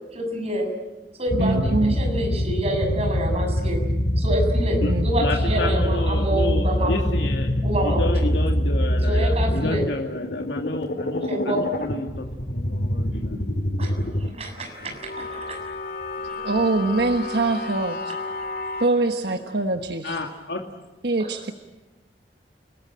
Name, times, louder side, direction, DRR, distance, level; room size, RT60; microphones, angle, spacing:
voice 1, 0.1-0.7 1.2-3.8 4.2-7.1 7.6-8.3 9.1-9.8 11.3-11.6 13.8-15.6 21.2-21.3, right 1 dB, 35° right, 3 dB, 6.8 m, -27 dB
sound 1, 1.3-14.3 14.6-18.9, left 1 dB, 55° left, 2.2 m, -25 dB
voice 2, 1.4-2.0 4.8-5.1 16.4-18.1 18.8-20.2 21.0-21.5, right 2 dB, 65° right, 6 dB, 1.3 m, -23 dB
voice 3, 5.2-7.5 7.8-12.3 12.5-13.4 14.8-15.3 20.0-20.6, left 2 dB, 75° left, 1 dB, 2.5 m, -30 dB
30.0 x 20.0 x 8.9 m, 1.2 s
head